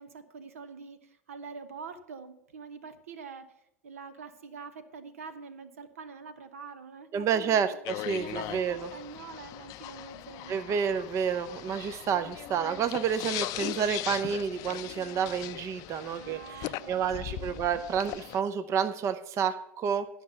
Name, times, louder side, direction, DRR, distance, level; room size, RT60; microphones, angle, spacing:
voice 1, 0.0-3.5 3.8-7.8 8.2-10.8 16.1-17.7, right 5 dB, 80° right, 11 dB, 0.9 m, -45 dB
voice 2, 7.1-8.9 10.5-20.1, right 7 dB, 40° right, 12 dB, 0.7 m, -30 dB
sound 1, 7.8-18.4, left 15 dB, 50° left, 0.4 m, -39 dB
11.5 x 5.9 x 6.6 m, 0.79 s
hypercardioid pair, 85°, 8 cm